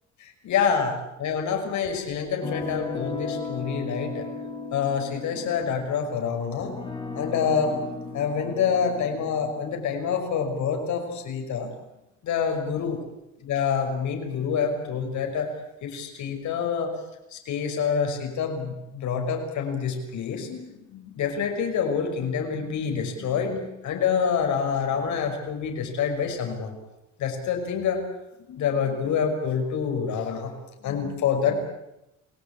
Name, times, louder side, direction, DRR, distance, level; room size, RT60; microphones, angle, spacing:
voice 1, 0.2-4.3 4.7-6.7 7.1-7.7 8.1-11.7 12.2-13.0 13.4-15.5 15.8-16.9 17.3-26.7 27.2-28.0 28.5-30.5 30.8-31.7, left 6 dB, 70° left, 3 dB, 6.0 m, -27 dB
sound 1, 2.4-11.6, left 4 dB, 15° left, 4.7 m, -36 dB
28.0 x 19.0 x 8.5 m, 0.89 s
cardioid pair, 145°, 30 cm